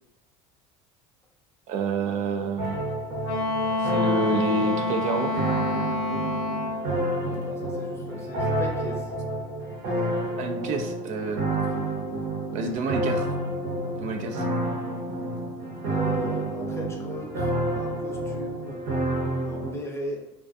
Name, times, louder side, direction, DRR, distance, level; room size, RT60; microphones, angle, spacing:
voice 1, 1.7-2.8 3.8-5.4 10.4-11.4 12.5-13.3 13.9-14.5, right 3 dB, 55° right, 4 dB, 0.4 m, -28 dB
sound 1, 2.6-19.7, right 1 dB, 75° right, 0.9 m, -29 dB
Wind instrument woodwind instrument, 3.2-6.9, left 2 dB, 75° left, 0.5 m, -28 dB
voice 2, 7.2-9.1 15.9-18.8 19.4-20.3, left 1 dB, 15° left, 0 dB, 0.6 m, -37 dB
2.3 x 2.2 x 2.5 m, 0.84 s
supercardioid pair, 110°, 16 cm